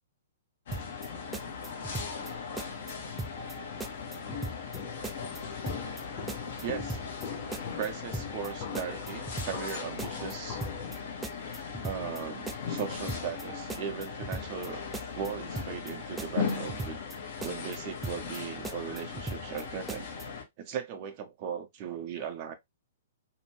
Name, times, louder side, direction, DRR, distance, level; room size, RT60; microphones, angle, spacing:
sound 1, 0.7-20.4, left 5 dB, 50° left, 1.0 m, -38 dB
sound 2, 0.7-1.1 1.3-2.3 2.6-2.9 3.2-3.5 3.8-4.8 5.0-5.4 5.7-6.0 6.3-7.3 7.5-7.9 8.1-8.5 8.8-9.7 10.0-10.3 10.6-11.0 11.2-12.2 12.5-12.8 13.1-13.4 13.7-14.7 14.9-15.3 15.6-15.9 16.2-17.2 17.4-17.8 18.0-18.4 18.6-19.6 19.9-20.2, right 2 dB, 5° right, 0.4 m, -38 dB
Walk footsteps, 4.3-11.0, left 6 dB, 30° left, 0.7 m, -42 dB
voice 1, 6.6-7.0 7.7-10.6 11.8-14.8 15.1-17.0 17.4-20.1 20.6-22.5, right 8 dB, 35° right, 0.8 m, -38 dB
2.8 x 2.5 x 3.1 m
figure-of-eight pair, 115°, 0 cm